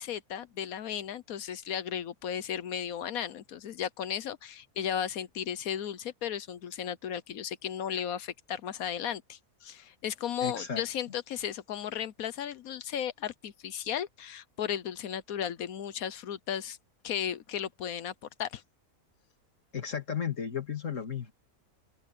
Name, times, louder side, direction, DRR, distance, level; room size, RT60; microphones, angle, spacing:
voice 1, 0.0-16.8 17.0-18.1 18.4-18.6, left 9 dB, 75° left, 1.2 m, -35 dB
voice 2, 10.4-10.8 19.7-21.3, left 7 dB, 55° left, 2.9 m, -34 dB
open air
omnidirectional pair, 1.5 m